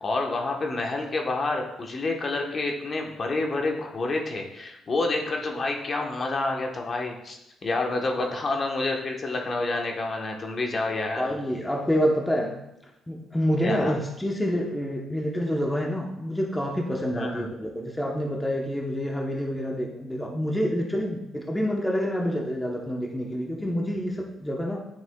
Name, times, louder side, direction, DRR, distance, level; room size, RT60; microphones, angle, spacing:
voice 1, 0.0-11.3 13.6-13.9 17.1-17.5, left 2 dB, 40° left, 2 dB, 1.1 m, -28 dB
voice 2, 11.2-12.6 13.1-24.8, equal, 10° left, 0 dB, 0.9 m, -27 dB
9.5 x 5.9 x 2.3 m, 0.86 s
cardioid pair, 90°, 0 cm